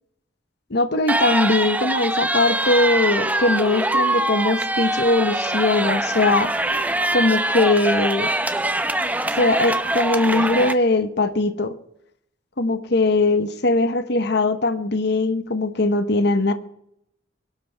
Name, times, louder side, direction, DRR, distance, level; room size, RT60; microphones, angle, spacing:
voice 1, 0.7-6.5 7.1-8.3 9.3-11.7 12.6-16.5, left 2 dB, 60° left, 10 dB, 1.1 m, -20 dB
sound 1, 1.1-10.7, right 1 dB, 10° right, 0.8 m, -23 dB
23.5 x 12.5 x 3.5 m, 0.76 s
head